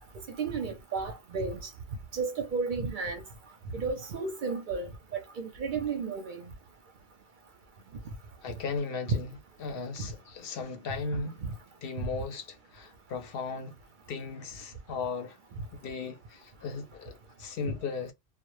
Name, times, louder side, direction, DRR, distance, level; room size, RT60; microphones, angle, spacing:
voice 1, 0.3-1.7 2.1-3.2 3.7-6.5 10.0-10.1, right 4 dB, 60° right, 0.6 m, -33 dB
voice 2, 8.4-11.4 11.8-13.8 14.1-15.4 15.8-18.1, left 4 dB, 65° left, 0.7 m, -36 dB
2.1 x 2.0 x 3.0 m
omnidirectional pair, 1.1 m